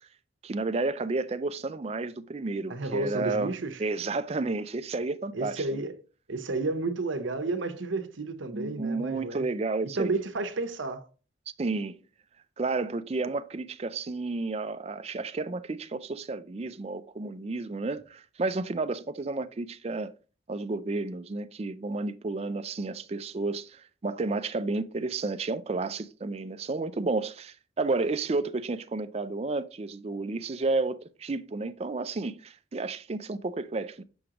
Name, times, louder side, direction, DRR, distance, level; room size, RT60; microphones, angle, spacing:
voice 1, 0.4-3.5 3.8-5.8 8.5-10.1 11.6-12.0 12.6-20.1 20.5-34.0, right 3 dB, 35° right, 0.4 m, -31 dB
voice 2, 2.7-3.8 5.3-6.0 6.3-9.5 10.0-11.1, right 3 dB, 90° right, 0.8 m, -31 dB
7.1 x 5.0 x 2.9 m
head